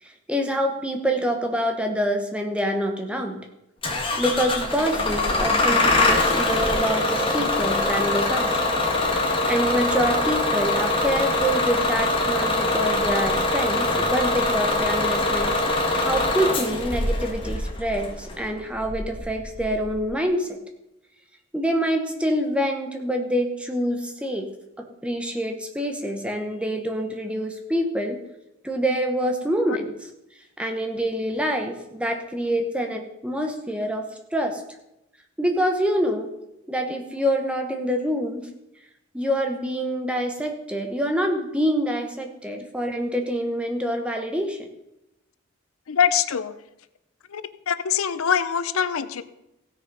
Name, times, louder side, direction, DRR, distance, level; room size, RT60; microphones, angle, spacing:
voice 1, 0.0-3.4 4.2-8.7 9.2-15.6 15.9-20.6 21.5-24.5 25.0-28.2 28.6-30.1 30.6-34.6 35.4-36.3 36.7-38.5 39.1-44.7, equal, 5° right, 3 dB, 1.0 m, -26 dB
Bus / Engine starting, 3.8-20.0, left 2 dB, 25° left, 1.5 m, -23 dB
voice 2, 45.9-46.5 47.3-49.2, left 7 dB, 85° left, 14 dB, 0.6 m, -24 dB
15.5 x 6.5 x 5.4 m, 0.90 s
head